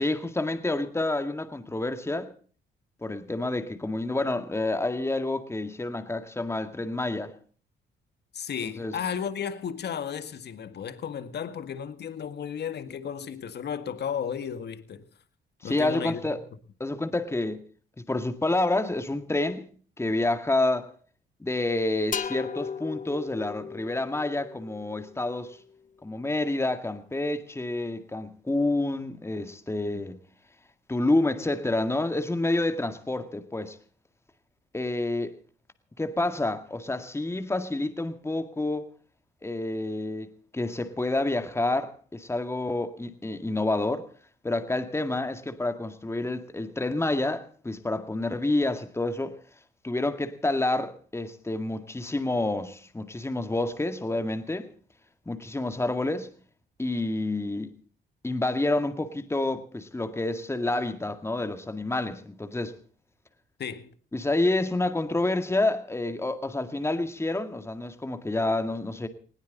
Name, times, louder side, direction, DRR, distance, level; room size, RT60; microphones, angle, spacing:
voice 1, 0.0-2.3 3.0-7.3 8.8-8.9 15.6-16.4 16.8-17.6 18.1-19.7 20.0-20.9 21.4-25.6 26.0-30.2 30.9-33.8 34.7-35.3 36.0-38.9 39.4-44.1 44.4-49.3 49.8-54.7 55.3-56.3 56.8-57.7 58.2-62.8 64.1-69.1, left 2 dB, 15° left, 2.1 m, -28 dB
voice 2, 8.3-15.0 15.6-16.2 29.9-30.1 63.6-63.9, left 7 dB, 55° left, 1.8 m, -34 dB
sound 1, 22.1-25.8, left 6 dB, 40° left, 1.0 m, -37 dB
20.0 x 17.5 x 4.1 m
cardioid pair, 90°, 20 cm